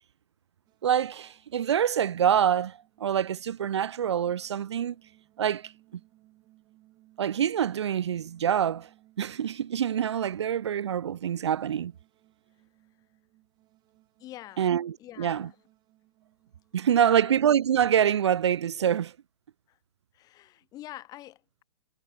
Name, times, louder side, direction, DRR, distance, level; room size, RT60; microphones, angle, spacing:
sound 1, 0.7-18.3, right 16 dB, 25° right, 3.7 m, -64 dB
voice 1, 0.8-5.0 5.4-5.7 7.2-8.9 9.2-11.9 14.6-15.5 16.7-19.1, right 9 dB, 60° right, 0.5 m, -25 dB
voice 2, 14.2-14.7 15.0-15.5 16.9-17.3 19.7-19.8 20.1-21.6, left 14 dB, 25° left, 1.1 m, -45 dB
figure-of-eight pair, 110°, 16 cm